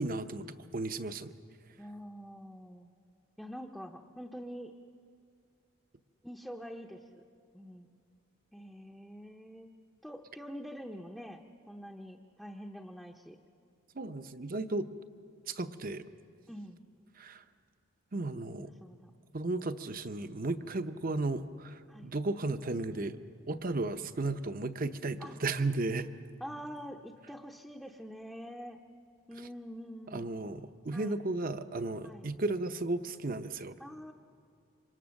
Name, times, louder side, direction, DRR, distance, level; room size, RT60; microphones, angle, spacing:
voice 1, 0.0-1.3 13.9-14.9 15.5-16.0 17.2-17.4 18.1-18.7 19.3-23.2 23.5-26.1 30.1-33.8, right 2 dB, 40° right, 10 dB, 0.8 m, -34 dB
voice 2, 1.8-2.9 3.4-4.7 6.2-7.2 7.5-7.9 8.5-9.7 10.0-13.4 16.5-16.8 18.8-19.1 21.9-22.1 25.2-25.4 26.4-28.8 29.3-30.3 30.9-31.2 32.0-32.3 33.8-34.1, equal, ahead, 1 dB, 0.7 m, -45 dB
27.5 x 25.5 x 6.4 m, 2.3 s
head